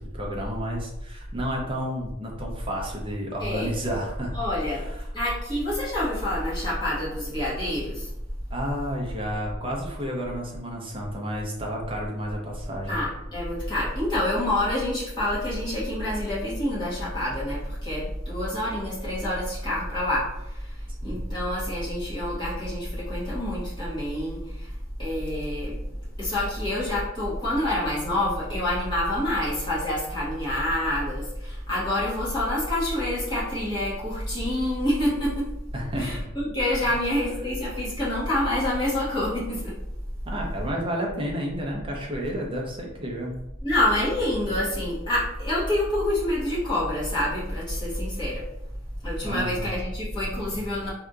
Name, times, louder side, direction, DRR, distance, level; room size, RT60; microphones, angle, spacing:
voice 1, 0.0-5.0 8.5-13.0 21.0-21.2 35.7-36.1 36.8-36.9 40.3-43.4 49.2-49.7, equal, 25° right, -1 dB, 0.7 m, -31 dB
voice 2, 3.4-3.7 4.3-4.9 5.1-8.1 12.9-24.7 25.0-25.7 26.2-35.4 36.0-39.8 43.6-48.4 49.0-50.9, left 1 dB, 25° left, -9 dB, 1.4 m, -27 dB
3.5 x 2.8 x 2.4 m, 0.87 s
head